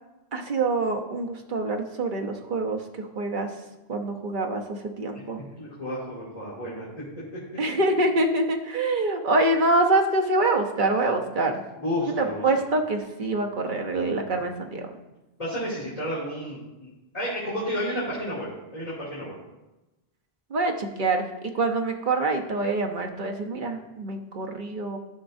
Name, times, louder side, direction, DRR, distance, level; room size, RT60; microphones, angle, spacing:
voice 1, 0.3-3.5 3.9-5.4 7.6-11.6 12.2-14.9 20.5-25.0, right 2 dB, 50° right, 3 dB, 1.0 m, -25 dB
voice 2, 5.6-6.9 11.8-12.4 15.4-16.9 17.1-18.5 18.7-19.4, equal, 35° left, -10 dB, 2.5 m, -31 dB
13.5 x 6.0 x 2.6 m, 1.0 s
omnidirectional pair, 1.1 m